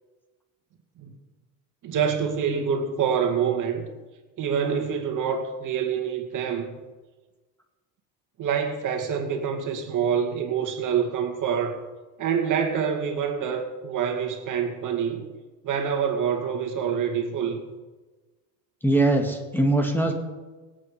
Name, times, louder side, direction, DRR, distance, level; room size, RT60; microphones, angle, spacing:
voice 1, 1.8-3.9 4.4-6.7 8.4-11.8 12.2-15.3 15.6-17.6, right 7 dB, 55° right, 2.3 m, -26 dB
voice 2, 18.8-20.1, right 2 dB, 5° left, 2.1 m, -21 dB
24.0 x 8.6 x 5.0 m
cardioid pair, 125°, 38 cm